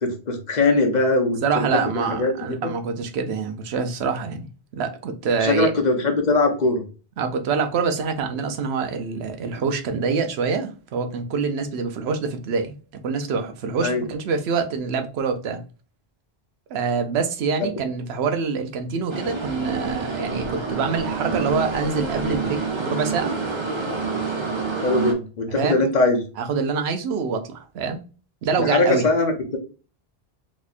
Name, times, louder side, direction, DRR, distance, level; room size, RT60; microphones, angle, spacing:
voice 1, 0.0-1.7 1.9-2.3 2.6-2.7 5.4-6.8 13.8-14.0 24.8-26.2 28.6-29.6, left 2 dB, 50° left, 0.7 m, -21 dB
voice 2, 1.4-4.5 4.7-5.7 7.2-12.8 13.0-15.6 16.7-23.3 25.5-25.8 26.4-28.0 28.4-29.1, right 5 dB, 90° right, 0.9 m, -25 dB
sound 1, 19.1-25.1, right 4 dB, 35° right, 0.6 m, -27 dB
4.0 x 2.7 x 2.4 m
omnidirectional pair, 1.0 m